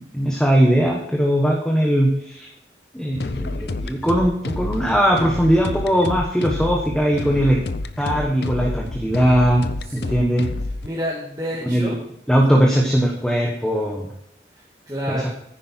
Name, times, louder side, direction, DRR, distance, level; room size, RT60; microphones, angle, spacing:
voice 1, 0.0-2.5 2.9-7.6 8.0-9.6 9.9-10.5 11.7-11.9 12.3-14.1 15.1-15.2, equal, 5° left, -1 dB, 1.2 m, -19 dB
sound 1, 3.1-10.9, left 2 dB, 65° left, 0.6 m, -29 dB
voice 2, 9.8-10.3 10.8-12.0 14.5-15.3, equal, 20° right, -5 dB, 1.8 m, -30 dB
10.0 x 9.7 x 4.5 m, 0.73 s
head